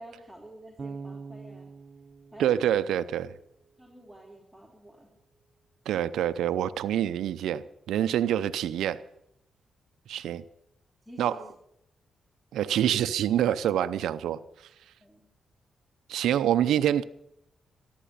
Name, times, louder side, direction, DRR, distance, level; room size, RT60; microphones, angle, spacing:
voice 1, 0.0-1.7 2.3-2.6 3.8-5.1 11.0-11.4 15.0-15.2, right 1 dB, ahead, 3.6 m, -48 dB
Bass guitar, 0.8-3.8, right 4 dB, 45° right, 0.7 m, -44 dB
voice 2, 2.4-3.3 5.9-9.0 10.1-10.4 11.2-11.4 12.5-14.4 16.1-17.0, right 10 dB, 90° right, 0.6 m, -26 dB
14.0 x 11.5 x 8.6 m
cardioid pair, 75°, 0 cm